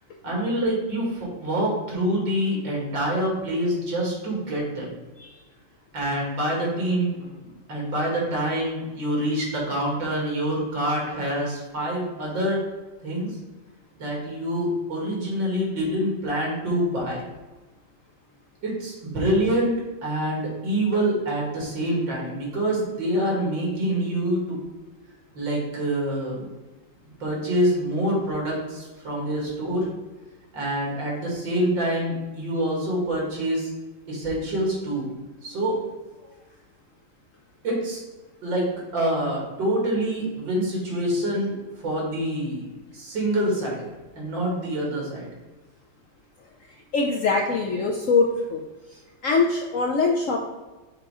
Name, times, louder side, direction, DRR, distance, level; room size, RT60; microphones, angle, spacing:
voice 1, 0.2-4.9 5.9-12.6 13.0-13.3 14.0-17.2 18.6-19.7 20.0-24.6 25.4-26.5 27.2-29.9 30.5-33.7 34.1-35.1 35.4-35.8 37.6-38.0 38.4-41.6 41.8-42.7 42.9-43.9 44.1-45.3, right 1 dB, 80° right, -3 dB, 2.8 m, -26 dB
voice 2, 46.9-48.6 49.2-50.4, left 4 dB, 60° left, 1 dB, 0.8 m, -22 dB
6.5 x 3.7 x 4.8 m, 1.2 s
omnidirectional pair, 2.0 m